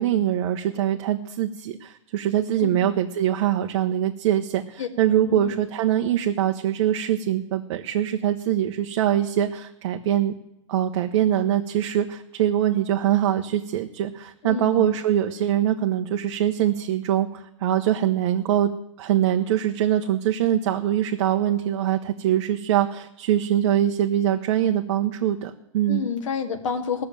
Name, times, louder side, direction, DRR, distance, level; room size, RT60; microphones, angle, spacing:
voice 1, 0.0-10.3 10.7-18.7 19.0-26.1, right 11 dB, 60° right, 3 dB, 1.0 m, -23 dB
voice 2, 14.4-14.9 25.9-27.0, left 6 dB, 80° left, 5 dB, 1.9 m, -29 dB
16.0 x 6.8 x 8.9 m, 0.83 s
hypercardioid pair, 145°, 16 cm